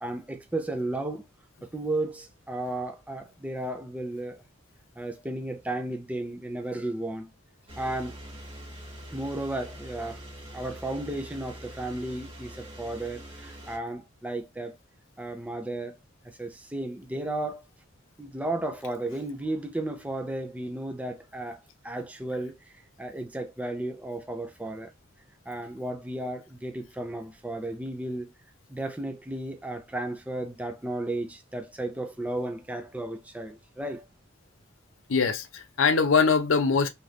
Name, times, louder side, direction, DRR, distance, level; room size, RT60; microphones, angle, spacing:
voice 1, 0.0-1.3 1.6-4.4 5.0-7.3 7.8-8.2 9.1-10.2 10.5-14.8 15.2-16.0 16.2-17.6 18.2-21.6 21.8-22.7 23.0-24.9 25.5-28.3 28.7-34.1, right 1 dB, 5° right, 0.4 m, -34 dB
sound 1, 7.7-13.8, equal, 30° right, 1.3 m, -44 dB
voice 2, 35.1-36.9, left 5 dB, 80° left, 0.6 m, -22 dB
2.8 x 2.5 x 3.3 m
head